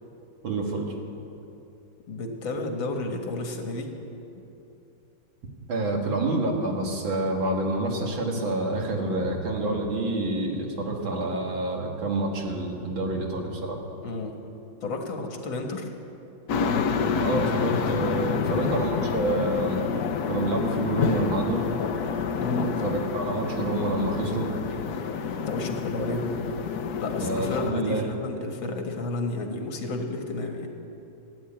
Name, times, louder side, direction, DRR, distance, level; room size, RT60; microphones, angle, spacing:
voice 1, 0.4-0.9 5.7-13.8 17.2-19.8 20.3-21.7 22.6-24.5 27.2-28.1, right 2 dB, 85° right, 0 dB, 2.7 m, -28 dB
voice 2, 2.1-3.9 4.4-4.5 14.0-14.3 14.8-15.9 18.3-18.7 22.4-22.7 25.3-26.3 27.0-30.7, left 2 dB, 85° left, 3 dB, 2.3 m, -31 dB
sound 1, 16.5-27.7, left 6 dB, 60° left, 1.2 m, -28 dB
15.5 x 10.0 x 8.7 m, 2.9 s
omnidirectional pair, 2.1 m